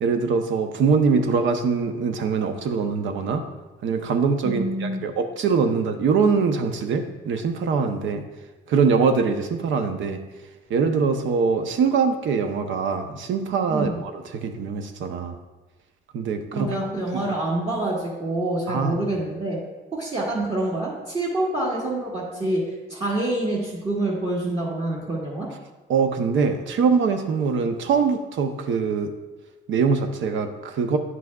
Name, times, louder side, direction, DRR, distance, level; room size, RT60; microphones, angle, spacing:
voice 1, 0.0-3.4 3.8-8.2 8.7-10.2 10.7-15.3 16.1-16.7 17.3-17.4 18.7-19.0 25.9-29.1 29.7-31.0, right 5 dB, 75° right, 7 dB, 0.7 m, -23 dB
voice 2, 4.4-5.0 13.7-14.0 16.5-19.6 19.9-25.5, right 2 dB, 30° right, -4 dB, 1.5 m, -26 dB
9.4 x 6.0 x 2.3 m, 1.2 s
cardioid pair, 90°, 20 cm